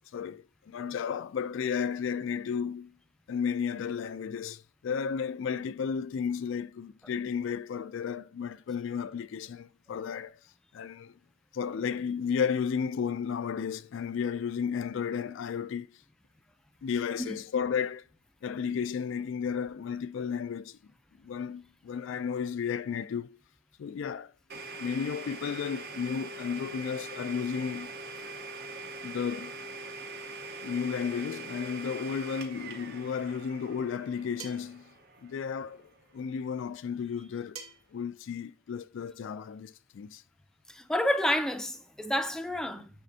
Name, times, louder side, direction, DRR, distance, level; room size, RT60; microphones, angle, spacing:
voice 1, 0.1-2.9 3.3-10.4 10.7-11.2 11.5-16.0 16.8-18.0 18.4-20.8 21.2-23.4 23.8-24.3 24.8-27.9 29.0-29.5 30.6-34.9 35.2-37.6 37.9-40.2, left 7 dB, 65° left, 0.3 m, -33 dB
Domestic sounds home sounds, 24.5-36.1, right 3 dB, 50° right, 1.0 m, -43 dB
sound 1, 34.4-34.8 37.6-38.0, right 6 dB, 75° right, 1.1 m, -44 dB
voice 2, 40.7-42.9, left 1 dB, 5° left, 0.5 m, -29 dB
9.2 x 5.0 x 2.7 m
head